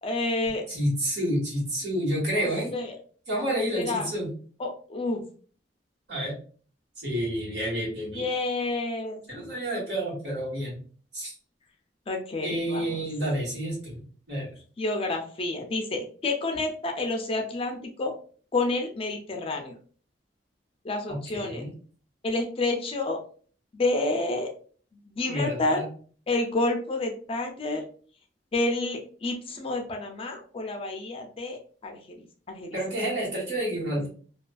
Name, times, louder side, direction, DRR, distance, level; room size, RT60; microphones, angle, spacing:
voice 1, 0.0-0.6 2.7-2.9 3.7-4.1 4.6-5.2 8.1-9.2 12.1-12.8 14.8-18.1 18.5-19.7 20.8-21.6 22.2-23.2 23.7-24.5 25.1-25.8 26.3-27.8 28.5-32.2 32.5-32.8, left 2 dB, 30° left, 3 dB, 0.4 m, -29 dB
voice 2, 0.7-2.7 3.3-4.3 6.1-6.3 7.0-8.2 9.3-10.8 11.1-11.3 12.4-14.5 21.1-21.7 25.3-25.8 32.7-34.1, equal, 70° right, -4 dB, 1.4 m, -29 dB
2.4 x 2.3 x 2.2 m, 0.43 s
head